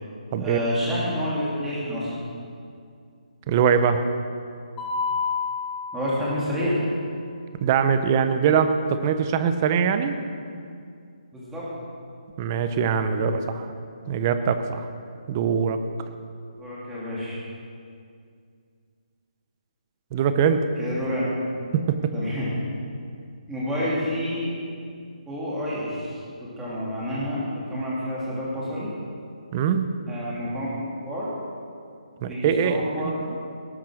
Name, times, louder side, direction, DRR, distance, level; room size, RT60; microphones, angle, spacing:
voice 1, 0.4-2.1 5.9-6.8 11.3-11.6 16.6-17.4 20.8-21.3 22.1-22.5 23.5-24.5 25.3-28.9 30.1-31.3 32.3-33.2, equal, 5° right, -8 dB, 2.9 m, -29 dB
voice 2, 3.5-4.0 7.6-10.2 12.4-13.4 14.1-14.9 15.3-15.8 20.1-20.7 21.7-22.1 29.5-29.9 32.2-33.4, right 7 dB, 20° right, 9 dB, 0.7 m, -22 dB
Mallet percussion, 4.8-6.8, left 5 dB, 10° left, 2.6 m, -30 dB
18.5 x 8.9 x 6.4 m, 2.3 s
hypercardioid pair, 170°, 4 cm